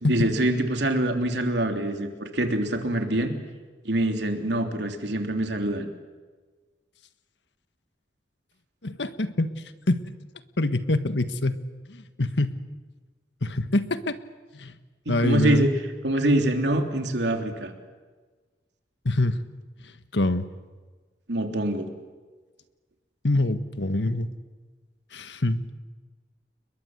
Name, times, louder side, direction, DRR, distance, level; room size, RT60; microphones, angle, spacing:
voice 1, 0.0-3.3 3.8-5.9 15.0-15.7 16.0-17.7 21.3-21.9, right 1 dB, 75° right, 5 dB, 3.3 m, -25 dB
voice 2, 8.8-9.5 9.9-10.0 10.6-11.6 11.9-12.6 13.4-14.2 14.5-14.7 15.1-15.7 19.0-19.4 20.1-20.5 23.2-24.3 25.1-25.6, left 2 dB, 85° left, 11 dB, 1.5 m, -25 dB
30.0 x 22.0 x 8.0 m, 1.4 s
head